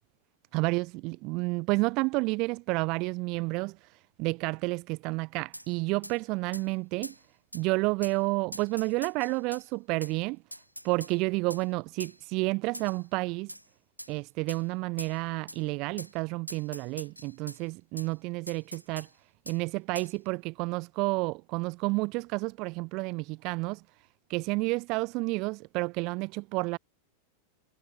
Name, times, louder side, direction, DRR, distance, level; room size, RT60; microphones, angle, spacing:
voice 1, 0.5-3.9 4.2-7.1 7.5-10.4 10.8-13.5 14.1-19.1 19.5-23.8 24.3-26.8, right 26 dB, 40° right, 1.7 m, -30 dB
sound 1, 5.5-5.7 6.0-6.2 6.5-6.7 7.0-7.2 7.5-7.6 8.0-8.2 8.5-9.6 10.0-10.1 10.5-11.1 11.5-11.6 12.0-12.2 12.7-13.0 13.5-13.6 14.0-14.1 14.5-14.6 15.0-15.1 15.5-15.6 16.0-16.1 16.5-17.6 18.0-18.1 18.5-19.1 19.5-19.6 19.9-20.1, equal, 90° right, 5.5 m, -43 dB
figure-of-eight pair, 90°, 0 cm